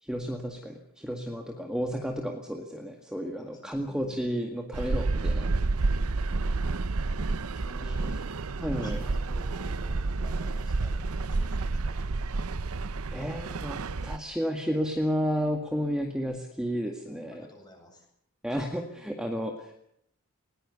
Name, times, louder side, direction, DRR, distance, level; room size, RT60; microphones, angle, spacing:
voice 1, 0.0-5.5 7.8-8.1 8.6-9.0 13.1-17.5 18.4-19.7, equal, 5° right, 2 dB, 1.9 m, -32 dB
voice 2, 3.4-4.2 4.7-5.3 7.5-8.2 8.6-12.5 17.1-18.1, left 1 dB, 20° left, 3 dB, 7.8 m, -52 dB
sound 1, 4.7-14.2, right 3 dB, 80° right, 0.7 m, -30 dB
21.0 x 20.0 x 7.0 m, 0.73 s
head